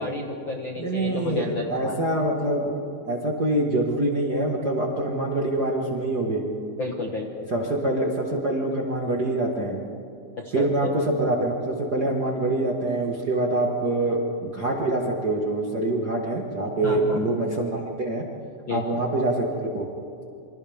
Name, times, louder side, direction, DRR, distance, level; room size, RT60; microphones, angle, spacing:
voice 1, 0.0-1.9 6.8-7.5 10.4-10.9 16.8-17.2 18.7-18.8, left 3 dB, 50° left, 0 dB, 1.5 m, -31 dB
voice 2, 0.8-2.7 3.1-6.4 7.5-9.8 10.5-18.2 18.7-19.5 19.7-19.9, right 2 dB, 40° right, -1 dB, 1.5 m, -25 dB
28.0 x 25.5 x 3.6 m, 2.7 s
omnidirectional pair, 4.0 m